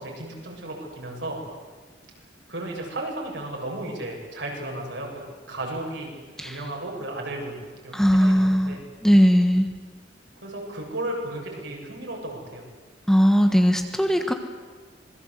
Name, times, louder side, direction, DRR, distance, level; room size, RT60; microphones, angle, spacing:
voice 1, 0.0-1.4 2.5-5.2 5.5-6.1 6.4-7.6 7.8-8.8 10.4-12.7, right 1 dB, 70° right, -1 dB, 7.5 m, -34 dB
voice 2, 7.9-9.7 13.1-14.3, equal, 5° left, 5 dB, 1.4 m, -19 dB
27.0 x 21.5 x 8.2 m, 1.4 s
head